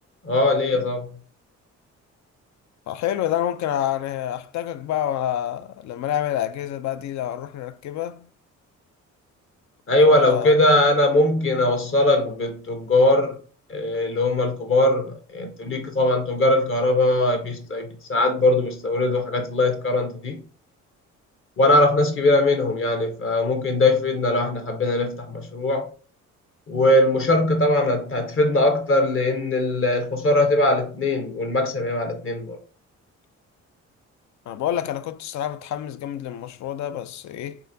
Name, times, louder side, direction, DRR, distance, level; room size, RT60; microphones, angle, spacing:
voice 1, 0.2-1.1 9.9-13.4 13.7-20.4 21.6-25.9 26.7-32.6, left 1 dB, 45° left, 1.0 m, -20 dB
voice 2, 2.9-8.3 10.1-10.5 34.5-37.6, left 11 dB, 65° left, 0.4 m, -28 dB
4.0 x 2.8 x 2.7 m
cardioid pair, 90°, 30 cm